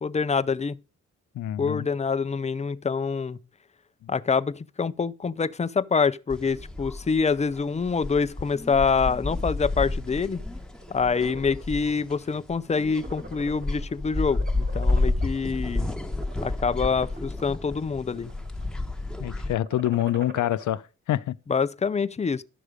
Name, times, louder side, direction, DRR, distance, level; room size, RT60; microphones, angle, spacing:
voice 1, 0.0-0.8 1.6-3.4 4.1-10.4 10.9-15.9 16.4-18.3 21.5-22.4, left 5 dB, 25° left, 0.5 m, -26 dB
voice 2, 1.3-1.9 4.0-4.1 19.2-21.4, left 13 dB, 75° left, 0.6 m, -26 dB
sound 1, 6.3-19.5, left 2 dB, ahead, 1.3 m, -31 dB
sound 2, 10.6-11.6 12.1-12.3 12.6-13.9 14.3-15.4 16.0-16.5 17.1-17.8 18.1-18.6 19.5-20.8, right 3 dB, 40° right, 2.2 m, -44 dB
12.0 x 6.5 x 5.0 m
cardioid pair, 95°, 30 cm